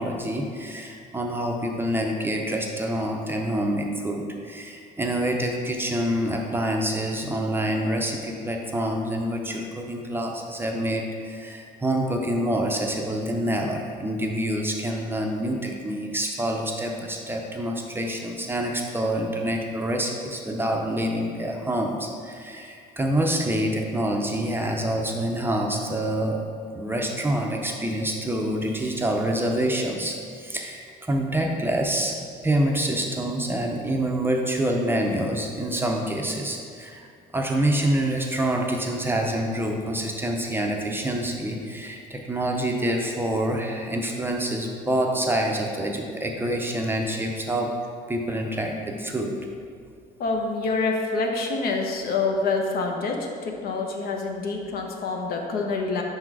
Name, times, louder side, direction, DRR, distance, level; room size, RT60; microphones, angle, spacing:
voice 1, 0.0-26.4 26.7-32.2 32.4-37.1 37.3-47.7 48.1-49.4, right 1 dB, 15° right, 1 dB, 0.5 m, -26 dB
voice 2, 50.2-56.0, left 3 dB, 65° left, 2 dB, 0.8 m, -26 dB
5.4 x 3.8 x 4.7 m, 2.2 s
cardioid pair, 110°, 17 cm